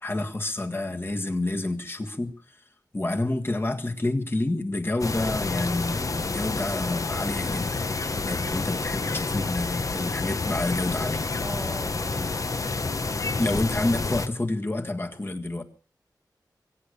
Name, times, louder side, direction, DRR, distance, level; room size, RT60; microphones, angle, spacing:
voice 1, 0.0-2.3 2.9-7.8 8.2-11.2 13.4-15.6, left 2 dB, 30° left, 1.7 m, -28 dB
sound 1, 5.0-14.3, left 3 dB, 50° left, 0.9 m, -29 dB
voice 2, 8.2-8.7 11.4-12.4, right 1 dB, 15° right, 1.0 m, -39 dB
23.0 x 8.4 x 6.7 m
wide cardioid pair, 85°, 7 cm